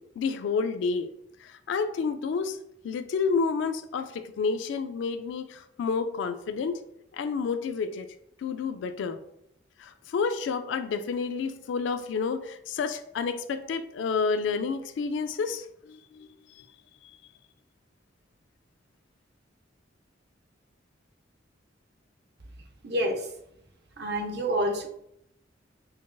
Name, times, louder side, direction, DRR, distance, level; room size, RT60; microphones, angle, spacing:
voice 1, 0.2-1.1 1.4-2.6 2.8-6.8 7.1-8.1 8.4-9.2 9.8-16.3 16.5-16.7, left 5 dB, 80° left, 0.3 m, -30 dB
voice 2, 22.8-23.3 24.0-24.9, right 1 dB, 60° right, 0.6 m, -28 dB
5.6 x 2.5 x 2.2 m
head